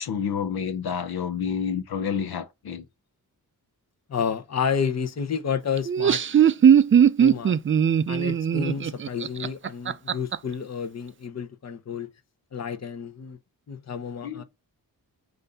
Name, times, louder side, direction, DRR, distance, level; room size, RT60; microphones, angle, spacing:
voice 1, 0.0-2.8 14.2-14.4, left 7 dB, 80° left, 0.9 m, -29 dB
voice 2, 4.1-6.2 7.2-7.6 8.1-12.1 12.5-13.4 13.7-14.4, left 6 dB, 45° left, 0.9 m, -30 dB
Laughter, 5.8-10.4, right 8 dB, 35° right, 0.4 m, -19 dB
7.8 x 2.7 x 5.4 m
cardioid pair, 90°, 37 cm